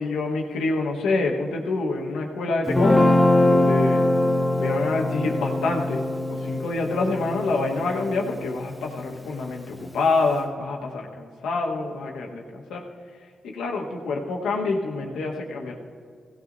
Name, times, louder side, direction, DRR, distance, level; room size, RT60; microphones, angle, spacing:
voice 1, 0.0-4.0 4.6-6.0 6.3-12.8 13.4-15.8, left 3 dB, 85° left, 0 dB, 1.4 m, -27 dB
Guitar, 2.7-9.0, left 1 dB, 10° left, 1.7 m, -22 dB
17.5 x 16.0 x 2.7 m, 2.1 s
supercardioid pair, 50°, 0 cm